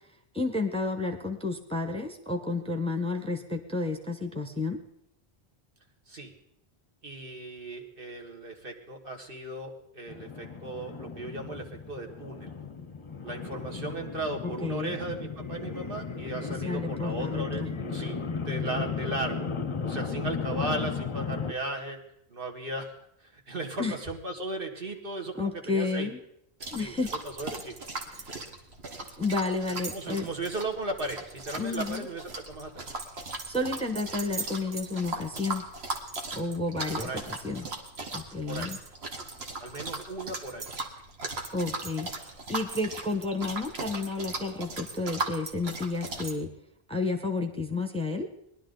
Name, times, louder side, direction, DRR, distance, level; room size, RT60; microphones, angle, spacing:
voice 1, 0.3-4.8 14.4-15.0 16.5-17.7 23.8-23.9 25.3-26.2 26.7-27.1 28.1-28.3 29.2-30.3 31.6-32.1 33.5-35.6 36.3-37.7 38.1-38.8 41.5-46.5 46.9-48.3, left 3 dB, 5° left, 5 dB, 1.0 m, -31 dB
voice 2, 7.0-12.5 13.2-17.6 17.9-19.5 19.8-22.0 22.3-22.9 23.3-26.1 26.8-26.9 27.2-28.0 29.7-32.9 37.0-37.3 38.5-38.7 39.6-40.7, right 2 dB, 60° right, 2 dB, 1.8 m, -36 dB
sound 1, 10.1-21.5, left 5 dB, 35° left, 0.6 m, -35 dB
sound 2, 26.6-46.3, right 3 dB, 80° right, 1.7 m, -38 dB
20.0 x 11.5 x 3.9 m, 0.76 s
omnidirectional pair, 1.0 m